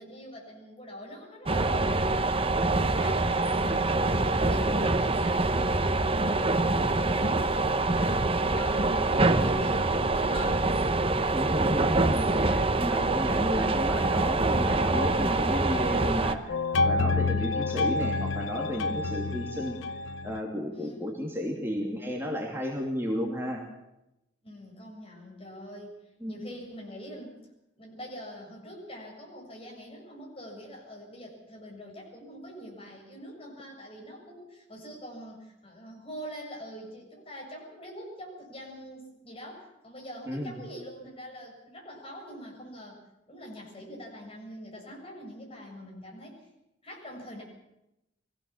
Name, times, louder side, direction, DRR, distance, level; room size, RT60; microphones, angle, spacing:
voice 1, 0.0-4.1 4.3-7.4 7.9-10.9 20.7-21.0 24.4-26.0 26.3-27.4 27.7-43.0 43.3-46.4 46.8-47.4, equal, 30° left, -1 dB, 7.1 m, -44 dB
sound 1, 1.5-16.3, right 2 dB, 30° right, 1.1 m, -25 dB
voice 2, 11.3-19.8 20.2-23.6 26.2-26.4 40.3-40.6, equal, 15° right, -1 dB, 2.8 m, -33 dB
sound 2, 14.9-16.1 16.5-20.4, left 3 dB, 85° left, 0.7 m, -29 dB
23.0 x 16.5 x 7.3 m, 0.90 s
head